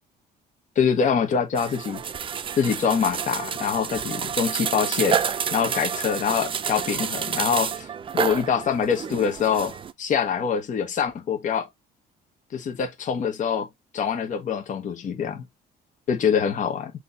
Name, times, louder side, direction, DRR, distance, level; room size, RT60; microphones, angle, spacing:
voice 1, 0.8-2.0 2.6-5.2 5.5-7.9 8.1-9.7 10.0-11.7 12.5-13.7 13.9-15.4 16.1-16.9, left 7 dB, 50° left, 1.1 m, -24 dB
sound 1, 1.6-9.9, right 7 dB, 30° right, 0.5 m, -29 dB
6.2 x 2.9 x 2.6 m
cardioid pair, 110°, 17 cm